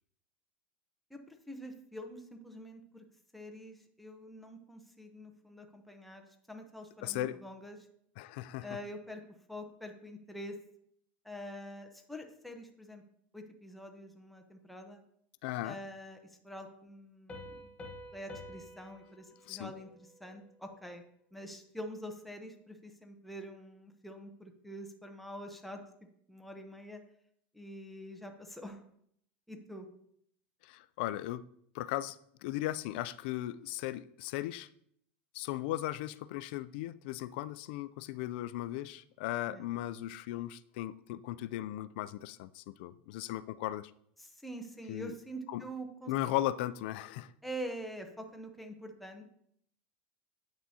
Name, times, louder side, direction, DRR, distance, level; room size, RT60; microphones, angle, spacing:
voice 1, 1.1-3.0 3.3-7.8 8.6-9.2 9.5-10.5 11.2-13.0 13.3-15.0 15.6-16.2 16.4-17.7 18.1-21.0 21.3-25.8 26.3-27.0 27.5-28.8 29.5-29.9 39.5-39.6 44.2-46.1 47.4-49.2, equal, ahead, 4 dB, 0.7 m, -45 dB
voice 2, 7.0-7.4 8.2-8.7 15.4-15.8 19.5-19.7 30.6-31.4 31.7-34.7 35.3-43.9 44.9-45.1 45.5-45.6 46.1-47.3, left 14 dB, 70° left, 16 dB, 0.3 m, -37 dB
Piano, 17.3-20.7, left 1 dB, 20° left, 1.1 m, -50 dB
8.6 x 6.0 x 2.8 m, 0.68 s
supercardioid pair, 145°, 6 cm